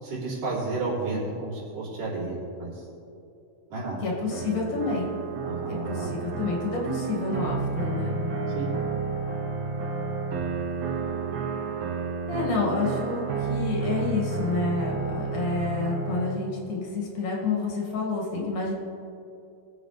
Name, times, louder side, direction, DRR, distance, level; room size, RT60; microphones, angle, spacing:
voice 1, 0.0-2.7 3.7-4.0 5.4-6.1 8.5-8.7, right 2 dB, 85° right, -7 dB, 4.9 m, -31 dB
voice 2, 4.0-5.1 5.7-8.2 12.3-18.7, left 4 dB, 75° left, -2 dB, 3.7 m, -29 dB
sound 1, 4.3-16.3, right 4 dB, 65° right, 2.0 m, -31 dB
21.0 x 7.9 x 3.4 m, 2.6 s
omnidirectional pair, 3.6 m